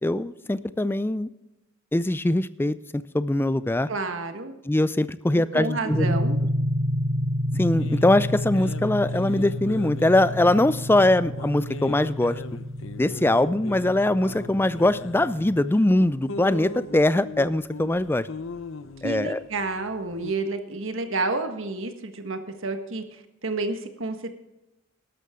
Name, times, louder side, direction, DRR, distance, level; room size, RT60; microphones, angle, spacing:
voice 1, 0.0-1.3 1.9-2.8 3.1-3.9 4.6-6.2 7.5-12.4 13.0-18.3 19.0-19.4, left 1 dB, 10° left, 15 dB, 0.4 m, -22 dB
voice 2, 3.9-4.5 5.3-6.4 19.0-23.0 23.4-24.3, right 3 dB, 65° right, 7 dB, 1.5 m, -30 dB
sound 1, 5.9-15.6, equal, 40° right, 1.1 m, -30 dB
sound 2, 7.8-20.3, left 3 dB, 60° left, 0.7 m, -40 dB
12.5 x 12.5 x 3.7 m, 0.96 s
head